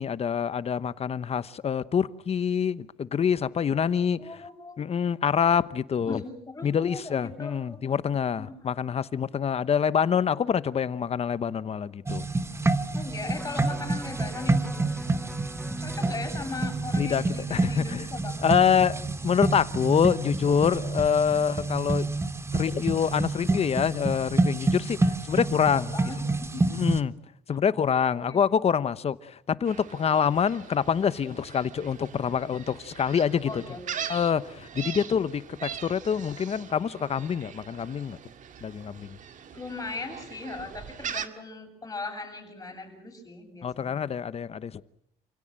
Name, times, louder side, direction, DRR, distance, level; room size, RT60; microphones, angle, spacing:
voice 1, 0.0-4.4 4.8-6.2 6.6-12.3 17.0-17.2 17.5-18.1 18.4-22.1 22.5-25.9 26.7-27.1 27.5-33.6 34.1-38.2 38.6-39.1 43.6-44.8, left 7 dB, 35° left, 1.0 m, -26 dB
voice 2, 4.2-4.8 6.1-8.0 8.4-8.5 12.9-14.8 15.8-18.4 25.3-26.7 27.5-27.6 28.1-28.5 33.5-34.1 39.5-44.1, left 3 dB, 20° left, 7.7 m, -39 dB
sound 1, 12.1-27.0, right 2 dB, 15° right, 1.4 m, -28 dB
Electric guitar, 13.3-19.6 20.0-20.1, left 1 dB, ahead, 1.8 m, -45 dB
Gull seagull, 29.7-41.3, right 8 dB, 50° right, 1.9 m, -41 dB
29.0 x 17.0 x 8.9 m
cardioid pair, 110°, 17 cm